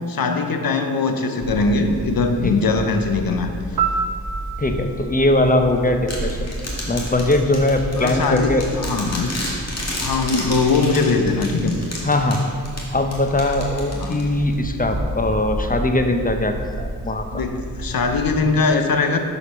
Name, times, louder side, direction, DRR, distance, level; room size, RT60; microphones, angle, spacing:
voice 1, 0.1-3.5 7.9-8.5 8.8-9.3 10.0-11.8 13.9-14.2 17.3-19.2, left 4 dB, 55° left, 6 dB, 0.9 m, -21 dB
sound 1, 1.4-18.4, right 2 dB, 45° right, 1.1 m, -32 dB
Piano, 3.8-6.7 14.9-15.1, right 6 dB, 70° right, 0.7 m, -29 dB
voice 2, 4.6-6.5 6.9-8.7 12.0-12.4 12.9-17.3, left 1 dB, 20° left, 6 dB, 0.8 m, -20 dB
sound 2, 6.1-14.5, left 1 dB, 40° left, 2.1 m, -32 dB
6.3 x 5.1 x 5.9 m, 2.1 s
cardioid pair, 50°, 41 cm